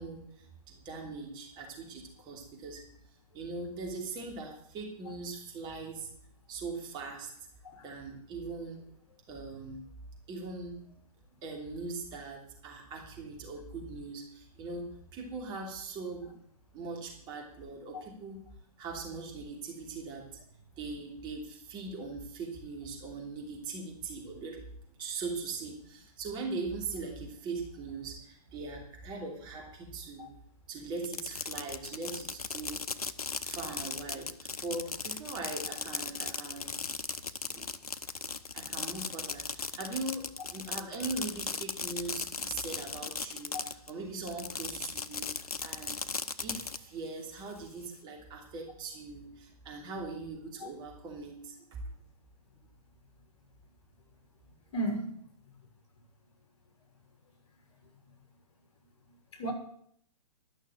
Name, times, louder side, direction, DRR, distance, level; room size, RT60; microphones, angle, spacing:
voice 1, 0.0-2.8 3.3-6.1 6.5-7.3 7.8-9.8 10.3-10.9 11.4-16.3 16.7-18.4 18.8-20.4 20.8-24.6 25.0-30.3 30.7-32.8 33.4-36.8 37.5-37.7 38.2-46.0 46.4-51.9, right 3 dB, 25° right, 2.9 m, -41 dB
Fireworks, 31.0-43.9 44.3-46.8, left 4 dB, 75° left, 0.8 m, -37 dB
voice 2, 54.7-55.2 59.4-59.5, right 1 dB, 45° left, 3.7 m, -34 dB
11.5 x 6.5 x 8.9 m
figure-of-eight pair, 120°, 19 cm